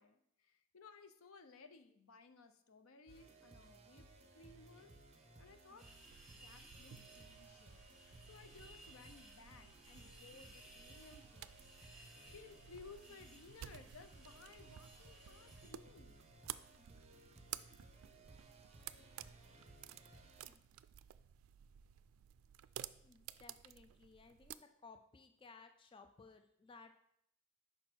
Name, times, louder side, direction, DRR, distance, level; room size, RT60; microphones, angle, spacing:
voice 1, 0.0-5.9 6.3-7.8 8.3-11.5 12.3-16.2, left 4 dB, 90° left, 9 dB, 0.6 m, -59 dB
sound 1, 3.1-20.5, right 2 dB, 30° right, 0.7 m, -61 dB
sound 2, 5.8-15.7, right 1 dB, ahead, 1.3 m, -62 dB
sound 3, 6.1-24.6, right 12 dB, 90° right, 0.3 m, -55 dB
voice 2, 23.0-26.9, left 4 dB, 25° left, 7 dB, 0.4 m, -60 dB
6.1 x 5.4 x 4.5 m, 0.74 s
head